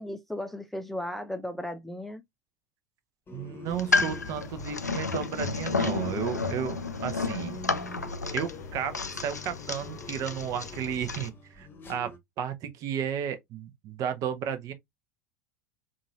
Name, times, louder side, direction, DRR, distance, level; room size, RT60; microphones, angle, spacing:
voice 1, 0.0-2.2, left 1 dB, ahead, 0.4 m, -35 dB
sound 1, 3.3-12.2, left 2 dB, 25° left, 1.0 m, -45 dB
voice 2, 3.3-7.6 8.3-14.7, right 8 dB, 40° right, 0.7 m, -33 dB
sound 2, 3.7-11.3, left 4 dB, 85° left, 0.4 m, -31 dB
sound 3, 3.7-11.3, left 5 dB, 55° left, 0.8 m, -46 dB
3.8 x 2.5 x 2.6 m
figure-of-eight pair, 80°, 9 cm